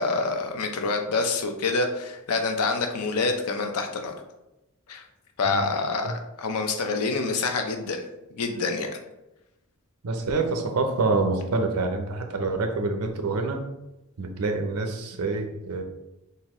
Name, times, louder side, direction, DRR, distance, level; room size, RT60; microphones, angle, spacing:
voice 1, 0.0-4.1 4.9-5.0 5.4-6.1 6.4-8.0 8.3-8.9, left 3 dB, 90° left, 5 dB, 0.5 m, -26 dB
voice 2, 10.0-13.6 14.2-15.8, right 3 dB, 85° right, 5 dB, 0.6 m, -26 dB
3.9 x 2.6 x 3.0 m, 0.95 s
head